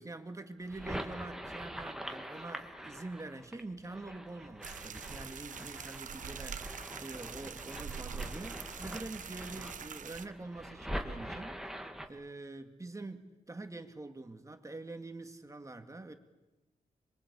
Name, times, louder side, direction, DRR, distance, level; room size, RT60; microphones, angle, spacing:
voice 1, 0.0-11.6 12.1-16.1, right 2 dB, 25° right, 6 dB, 2.4 m, -45 dB
sound 1, 0.6-12.1, equal, 5° right, 2.4 m, -44 dB
sound 2, 4.6-10.3, right 7 dB, 70° right, 1.2 m, -44 dB
26.5 x 23.0 x 8.6 m, 1.1 s
cardioid pair, 75°, 14 cm